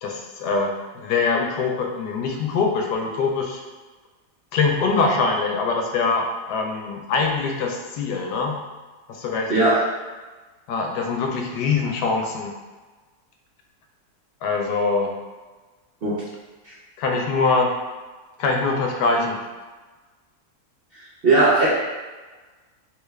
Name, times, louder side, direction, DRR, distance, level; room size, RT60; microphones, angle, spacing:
voice 1, 0.0-3.6 4.5-8.6 9.1-9.5 10.7-12.5 14.4-15.1 17.0-17.7 18.4-19.4, left 4 dB, 90° left, 1 dB, 1.2 m, -23 dB
voice 2, 21.2-21.7, right 2 dB, 60° right, -9 dB, 0.6 m, -17 dB
3.2 x 2.3 x 3.2 m, 1.3 s
omnidirectional pair, 1.7 m